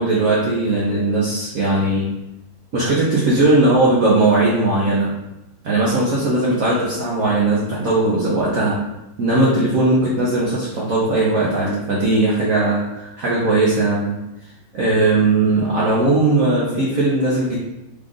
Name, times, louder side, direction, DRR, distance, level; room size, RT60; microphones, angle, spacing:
voice 1, 0.0-2.1 2.7-5.2 5.6-8.8 9.2-14.1 14.7-17.6, right 2 dB, 60° right, -5 dB, 0.9 m, -18 dB
4.9 x 2.4 x 3.7 m, 0.92 s
omnidirectional pair, 2.3 m